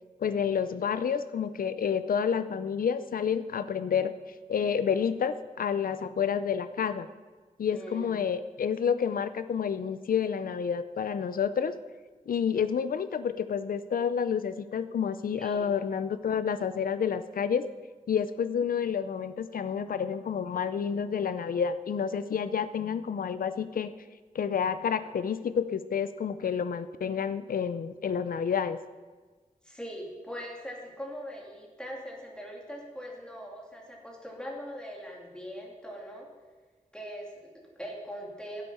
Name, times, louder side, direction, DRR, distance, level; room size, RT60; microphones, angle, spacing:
voice 1, 0.2-4.1 4.5-7.1 7.6-11.7 12.3-17.6 18.1-23.9 24.3-28.8, left 7 dB, 90° left, 12 dB, 0.6 m, -29 dB
voice 2, 7.7-8.2 15.4-15.7 29.6-36.3 36.9-38.6, equal, 5° left, -1 dB, 2.6 m, -41 dB
13.0 x 8.3 x 5.5 m, 1.4 s
wide cardioid pair, 115°, 14 cm